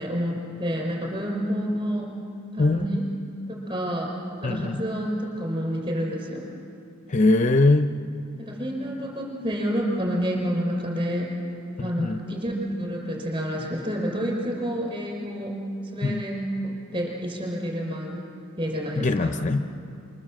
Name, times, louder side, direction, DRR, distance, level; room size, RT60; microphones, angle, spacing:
voice 1, 0.0-2.1 2.5-3.1 3.5-4.1 4.4-6.4 8.4-11.3 11.8-15.6 15.9-18.2 18.6-19.4, equal, 25° right, -1 dB, 5.3 m, -29 dB
voice 2, 4.4-4.8 7.1-7.9 11.8-12.2 16.0-16.2 19.0-19.8, left 2 dB, 35° left, 9 dB, 0.6 m, -21 dB
27.0 x 26.5 x 7.6 m, 2.7 s
head